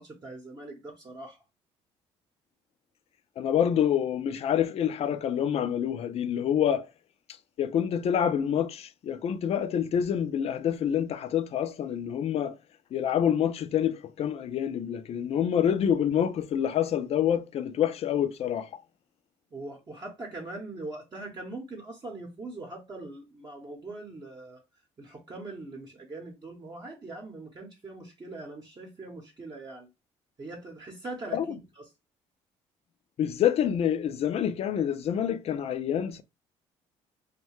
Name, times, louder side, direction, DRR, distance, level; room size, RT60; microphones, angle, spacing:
voice 1, 0.0-1.4 19.5-24.6 25.0-29.9 30.4-31.9, right 2 dB, 35° right, 0.8 m, -42 dB
voice 2, 3.4-6.9 7.6-12.5 12.9-18.7 31.3-31.6 33.2-36.2, left 9 dB, 55° left, 0.4 m, -27 dB
2.6 x 2.2 x 3.0 m
supercardioid pair, 80°, 13 cm